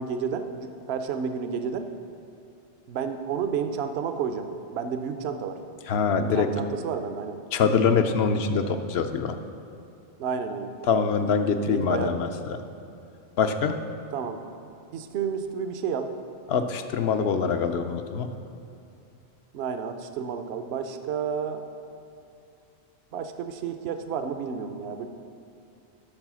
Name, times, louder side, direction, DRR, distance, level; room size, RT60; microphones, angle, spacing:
voice 1, 0.0-1.9 2.9-5.6 6.3-7.4 10.2-10.8 11.7-12.2 14.1-14.4 14.9-16.1 19.5-21.7 23.1-25.1, right 6 dB, 70° right, 8 dB, 0.8 m, -31 dB
voice 2, 5.9-6.5 7.5-9.4 10.9-12.3 13.4-13.8 16.5-18.3, left 6 dB, 70° left, 8 dB, 0.8 m, -24 dB
8.8 x 6.1 x 6.1 m, 2.6 s
omnidirectional pair, 1.2 m